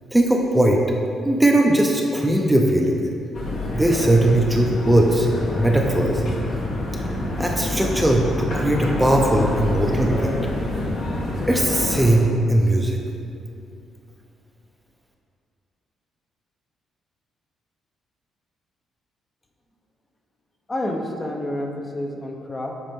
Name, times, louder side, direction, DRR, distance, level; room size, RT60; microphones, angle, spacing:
voice 1, 0.1-0.8 1.2-3.0 3.7-5.3 5.5-6.2 7.4-10.3 11.5-13.0, right 1 dB, 10° right, 1 dB, 0.6 m, -19 dB
sound 1, 3.3-12.1, left 1 dB, 60° left, 1.2 m, -27 dB
voice 2, 20.7-22.7, left 1 dB, 25° left, 2 dB, 0.7 m, -29 dB
7.9 x 4.1 x 3.6 m, 2.5 s
cardioid pair, 90°, 0 cm